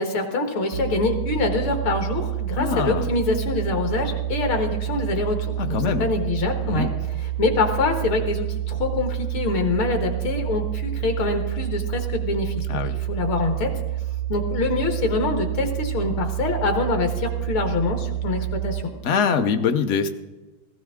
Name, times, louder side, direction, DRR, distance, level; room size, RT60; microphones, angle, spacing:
voice 1, 0.0-6.9 7.2-12.8 13.1-13.7 14.3-18.9, left 3 dB, 70° left, 5 dB, 2.2 m, -25 dB
sound 1, 0.7-18.8, right 13 dB, 85° right, 1.6 m, -28 dB
voice 2, 2.6-3.1 5.6-6.1 6.7-6.9 12.7-13.0 19.0-20.1, left 6 dB, 90° left, 7 dB, 0.6 m, -23 dB
16.5 x 15.5 x 3.7 m, 1.1 s
omnidirectional pair, 2.4 m